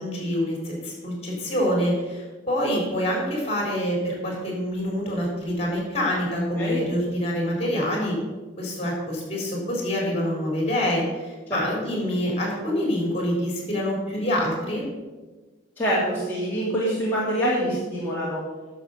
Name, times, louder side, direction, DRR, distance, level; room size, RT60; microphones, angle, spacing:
voice 1, 0.0-8.2 8.6-14.8, equal, 35° left, -1 dB, 4.2 m, -26 dB
voice 2, 15.8-18.4, equal, 10° left, -9 dB, 2.5 m, -25 dB
11.0 x 6.9 x 6.8 m, 1.3 s
head